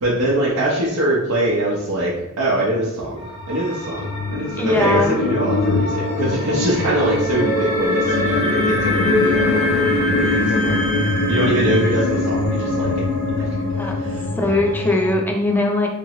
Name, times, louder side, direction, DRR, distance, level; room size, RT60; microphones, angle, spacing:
voice 1, 0.0-10.8 11.3-13.6 13.8-14.6, right 1 dB, 85° right, -7 dB, 0.6 m, -23 dB
sound 1, 3.2-15.2, left 2 dB, 80° left, 1.1 m, -22 dB
voice 2, 4.6-5.2 13.8-13.9 14.4-15.9, left 2 dB, 10° left, 1 dB, 0.4 m, -20 dB
Wind instrument woodwind instrument, 8.1-12.0, left 2 dB, 30° right, 0.7 m, -28 dB
2.9 x 2.6 x 2.9 m, 0.95 s
head